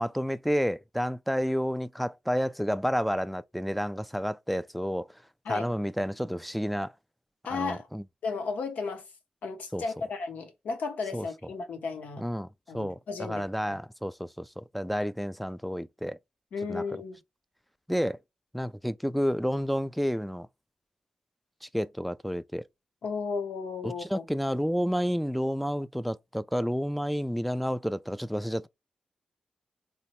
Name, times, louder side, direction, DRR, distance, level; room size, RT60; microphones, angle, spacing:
voice 1, 0.0-5.1 5.5-6.9 7.5-8.0 9.7-9.8 11.1-11.3 12.2-12.5 12.7-16.2 16.7-16.8 17.9-18.2 18.5-20.5 21.6-22.6 23.8-28.7, equal, ahead, 0.3 m, -30 dB
voice 2, 7.4-7.9 8.2-9.0 9.4-12.3 12.7-13.8 16.5-17.2 23.0-24.3, left 4 dB, 75° left, 0.7 m, -34 dB
3.1 x 2.1 x 2.9 m
supercardioid pair, 45°, 3 cm